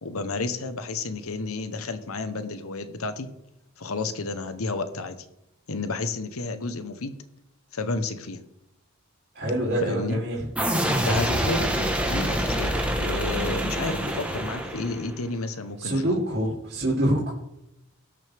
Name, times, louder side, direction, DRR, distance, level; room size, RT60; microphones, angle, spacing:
voice 1, 0.0-3.3 3.8-5.2 5.7-7.2 7.7-8.4 9.8-10.2 11.1-16.1, left 3 dB, 90° left, 10 dB, 1.0 m, -31 dB
voice 2, 9.3-10.4 10.7-10.9 15.8-17.3, right 1 dB, 55° right, -4 dB, 3.0 m, -26 dB
sound 1, 10.6-15.2, right 1 dB, 5° right, 1.2 m, -26 dB
18.5 x 6.4 x 3.5 m, 0.82 s
head